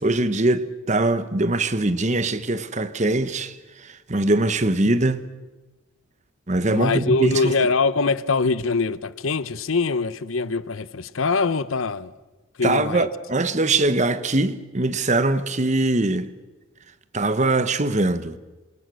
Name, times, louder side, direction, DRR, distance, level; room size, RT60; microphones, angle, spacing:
voice 1, 0.0-5.2 6.5-7.7 12.6-16.3 17.1-18.4, right 2 dB, 35° right, 1.1 m, -22 dB
voice 2, 6.7-12.1 12.6-13.1, left 4 dB, 75° left, 0.8 m, -23 dB
27.5 x 25.0 x 6.3 m
head